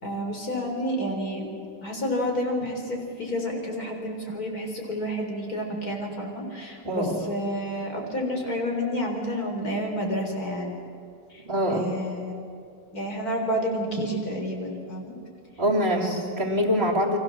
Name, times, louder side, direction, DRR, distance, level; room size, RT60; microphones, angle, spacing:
voice 1, 0.0-1.4 1.8-10.8 11.3-11.4 11.7-12.4 12.9-15.1 15.9-16.2, equal, 60° left, 2 dB, 4.6 m, -30 dB
voice 2, 6.8-7.2 11.5-11.9 15.6-17.2, equal, 35° right, 2 dB, 2.8 m, -24 dB
29.5 x 23.5 x 7.3 m, 2.4 s
omnidirectional pair, 1.8 m